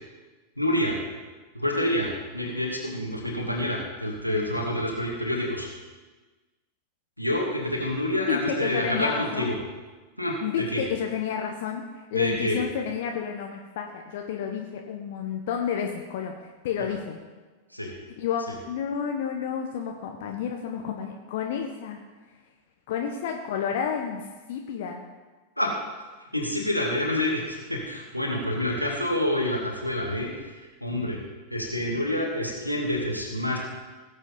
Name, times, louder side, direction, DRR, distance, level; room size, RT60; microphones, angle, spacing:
voice 1, 0.6-1.0 1.5-5.7 7.2-9.5 10.2-10.4 10.7-10.8 12.1-12.6 17.7-17.9 25.6-25.7 26.3-30.5 30.8-31.2 31.5-33.6, left 1 dB, 90° left, -1 dB, 2.4 m, -27 dB
voice 2, 8.3-9.5 10.4-17.2 18.2-22.0 22.9-25.0, left 7 dB, 55° left, 2 dB, 1.1 m, -30 dB
18.0 x 8.1 x 3.9 m, 1.3 s
figure-of-eight pair, 90°, 0 cm